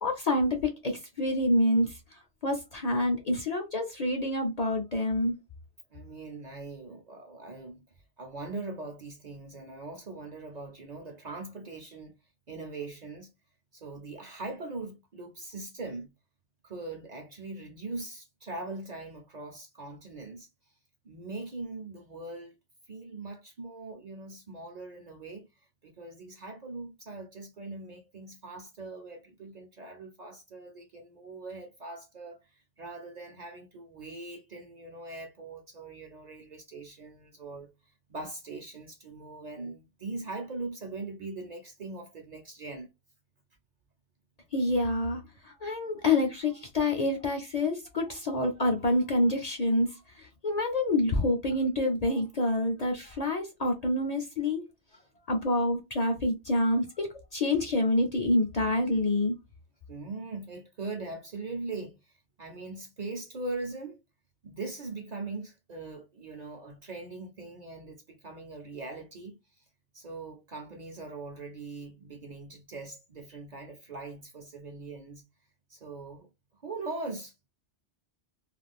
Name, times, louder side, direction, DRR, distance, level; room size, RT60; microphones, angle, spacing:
voice 1, 0.0-2.0 2.4-5.4 44.5-54.6 55.3-59.4, left 1 dB, 45° left, 0.6 m, -27 dB
voice 2, 5.9-7.9 8.2-12.2 12.5-13.3 13.7-16.1 16.6-20.5 21.0-22.6 22.9-25.5 25.8-42.9 59.9-64.0 64.4-69.6 69.9-75.2 75.7-76.3 76.5-77.5, right 3 dB, 45° right, 0.6 m, -41 dB
2.5 x 2.4 x 3.4 m
omnidirectional pair, 1.2 m